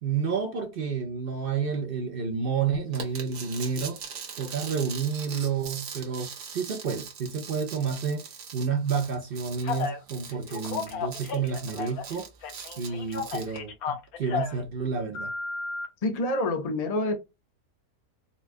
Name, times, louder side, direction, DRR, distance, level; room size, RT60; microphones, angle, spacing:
voice 1, 0.0-4.0 4.4-8.3 8.5-12.3 12.8-15.3, right 6 dB, 60° right, 0.6 m, -30 dB
sound 1, 2.9-13.6, right 7 dB, 75° right, 1.4 m, -41 dB
Telephone, 9.6-10.0 10.5-12.1 12.4-14.6 15.1-15.9, left 5 dB, 75° left, 1.2 m, -33 dB
voice 2, 16.0-17.2, left 2 dB, 40° left, 0.5 m, -27 dB
4.1 x 2.3 x 2.5 m
omnidirectional pair, 1.6 m